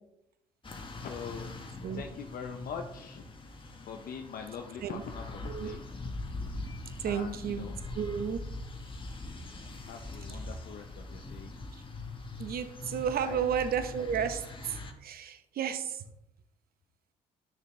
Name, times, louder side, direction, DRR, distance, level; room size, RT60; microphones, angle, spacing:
sound 1, 0.6-14.9, left 2 dB, 30° left, 1.5 m, -42 dB
voice 1, 1.0-1.5 1.9-3.2 3.9-5.8 7.1-7.8 9.4-11.5 13.2-13.7, left 6 dB, 55° left, 4 dB, 0.8 m, -43 dB
voice 2, 5.4-5.7 7.0-7.6 7.9-8.4 12.4-14.8 15.0-16.0, right 8 dB, 60° right, 10 dB, 0.9 m, -32 dB
10.5 x 6.5 x 3.2 m, 0.82 s
hypercardioid pair, 60°, 18 cm